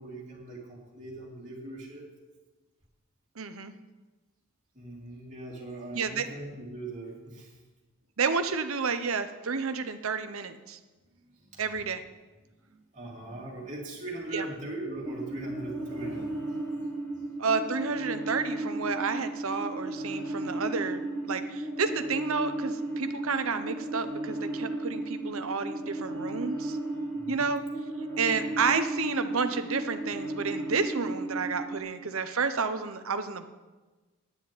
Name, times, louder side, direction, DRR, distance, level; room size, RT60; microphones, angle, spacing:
voice 1, 0.0-2.1 4.7-7.6 11.2-11.6 12.7-16.6 27.1-27.4 28.5-28.6, right 2 dB, 30° right, -5 dB, 3.1 m, -40 dB
voice 2, 3.4-3.7 5.9-6.3 8.2-10.8 11.6-12.0 14.3-14.5 17.4-26.8 27.3-27.6 28.2-33.5, right 5 dB, 70° right, 10 dB, 0.9 m, -30 dB
sound 1, 15.0-31.8, right 2 dB, 10° left, 2.0 m, -34 dB
9.8 x 7.2 x 9.3 m, 1.2 s
head